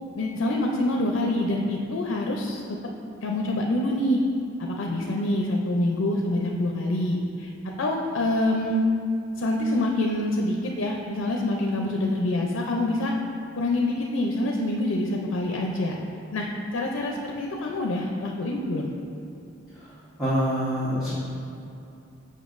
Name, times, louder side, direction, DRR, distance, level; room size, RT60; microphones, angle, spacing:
voice 1, 0.2-2.6 3.2-4.2 4.6-7.5 7.8-8.8 9.4-13.1 13.6-16.0 16.3-16.5 16.7-18.9, left 1 dB, 85° left, 0 dB, 0.5 m, -26 dB
voice 2, 20.2-21.1, equal, ahead, -13 dB, 1.1 m, -26 dB
7.1 x 5.3 x 2.5 m, 2.7 s
head